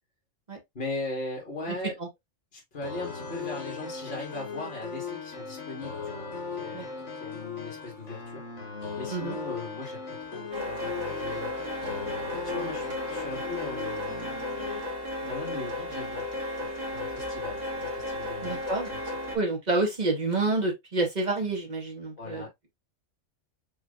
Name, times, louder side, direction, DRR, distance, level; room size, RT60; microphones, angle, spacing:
voice 1, 0.7-1.9 2.5-6.3 6.5-6.9 7.1-8.4 9.0-11.8 12.2-18.6 18.9-19.0 22.2-22.7, left 2 dB, 50° left, 2.3 m, -39 dB
sound 1, 2.8-14.8, left 5 dB, 65° left, 1.8 m, -38 dB
sound 2, 10.5-19.4, left 1 dB, 85° right, 1.9 m, -34 dB
voice 2, 18.4-18.9 19.3-22.4, right 2 dB, 35° right, 1.7 m, -28 dB
5.9 x 3.2 x 2.5 m
omnidirectional pair, 1.3 m